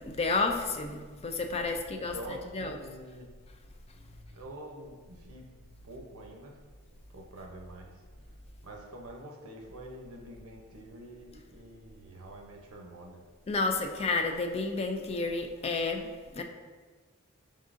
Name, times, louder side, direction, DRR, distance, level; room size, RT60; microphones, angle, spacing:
voice 1, 0.1-2.1 2.5-2.8 13.5-16.4, left 3 dB, 30° left, 4 dB, 0.3 m, -31 dB
voice 2, 1.7-3.3 4.3-5.5 5.8-6.6 7.1-8.0 8.6-13.2, right 1 dB, 75° right, 1 dB, 0.7 m, -46 dB
5.2 x 3.6 x 2.5 m, 1.5 s
head